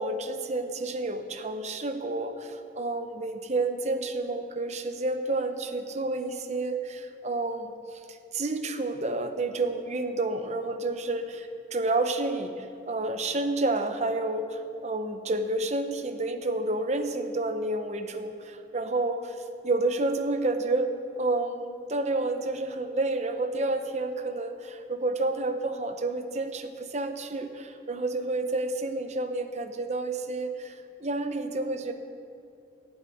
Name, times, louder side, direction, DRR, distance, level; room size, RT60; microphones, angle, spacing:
voice 1, 0.0-19.4 19.6-31.9, right 2 dB, 35° right, 7 dB, 0.9 m, -30 dB
12.0 x 7.6 x 9.2 m, 2.5 s
head